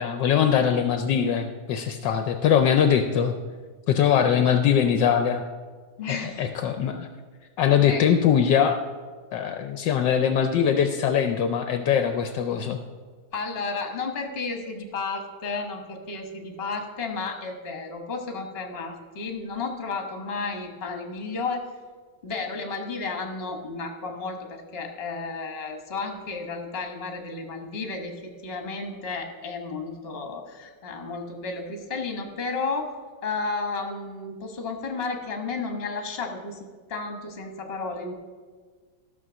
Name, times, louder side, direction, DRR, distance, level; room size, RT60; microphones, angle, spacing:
voice 1, 0.0-3.3 3.9-5.4 6.4-7.1 7.6-8.8 9.3-12.8, left 8 dB, 75° left, 7 dB, 1.3 m, -22 dB
voice 2, 6.0-6.4 7.9-8.0 13.3-21.7 22.2-33.0 33.2-38.1, left 4 dB, 35° left, 4 dB, 1.4 m, -32 dB
13.5 x 6.3 x 6.1 m, 1.5 s
omnidirectional pair, 2.1 m